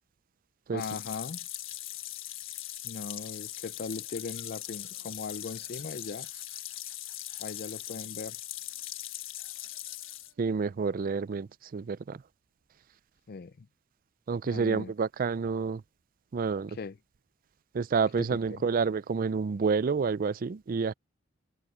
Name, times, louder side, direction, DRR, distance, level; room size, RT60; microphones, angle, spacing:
voice 1, 0.7-1.4 2.8-6.3 7.4-8.4 13.3-13.7 14.4-14.9 16.8-17.0 18.2-18.6, left 4 dB, 50° left, 0.5 m, -39 dB
sound 1, 0.8-10.3, left 14 dB, 90° left, 1.4 m, -40 dB
Laughter, 3.1-8.3 8.6-10.5, right 7 dB, 65° right, 7.5 m, -62 dB
voice 2, 10.4-12.2 14.3-15.8 16.3-16.8 17.7-20.9, right 5 dB, 45° right, 0.4 m, -29 dB
head